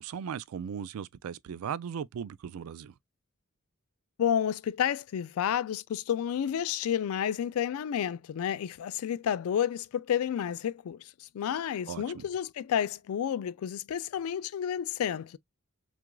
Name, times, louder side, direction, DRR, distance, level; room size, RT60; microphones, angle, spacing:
voice 1, 0.0-2.9 11.9-12.3, right 7 dB, 70° right, 0.3 m, -37 dB
voice 2, 4.2-15.4, left 9 dB, 70° left, 0.3 m, -30 dB
5.9 x 2.4 x 2.2 m
head